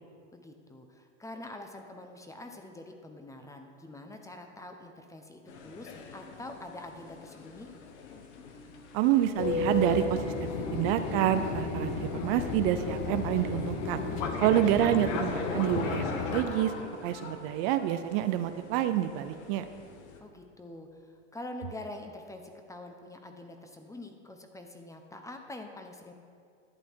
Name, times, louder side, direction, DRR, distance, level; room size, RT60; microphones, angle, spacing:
voice 1, 0.3-7.7 14.2-14.6 20.2-20.9 21.3-22.4 22.7-26.1, left 2 dB, 10° left, 5 dB, 0.9 m, -45 dB
sound 1, 5.5-20.2, left 4 dB, 70° left, 1.4 m, -45 dB
voice 2, 8.9-14.0 14.4-16.7 17.0-19.6, right 12 dB, 55° right, 9 dB, 0.6 m, -28 dB
Fixed-wing aircraft airplane, 9.4-16.4, left 4 dB, 50° left, 1.4 m, -33 dB
11.5 x 8.2 x 4.6 m, 2.3 s
hypercardioid pair, 105°, 35 cm